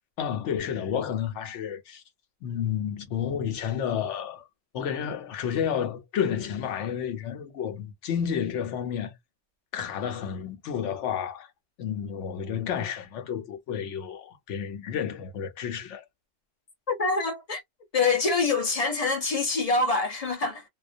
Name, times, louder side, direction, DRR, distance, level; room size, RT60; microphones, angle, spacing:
voice 1, 0.2-2.0 2.4-4.4 4.7-9.1 9.7-11.5 11.8-16.1, left 8 dB, 75° left, 0.9 m, -31 dB
voice 2, 16.9-17.6 17.9-20.6, left 3 dB, 50° left, 0.4 m, -25 dB
2.3 x 2.1 x 2.5 m
omnidirectional pair, 1.3 m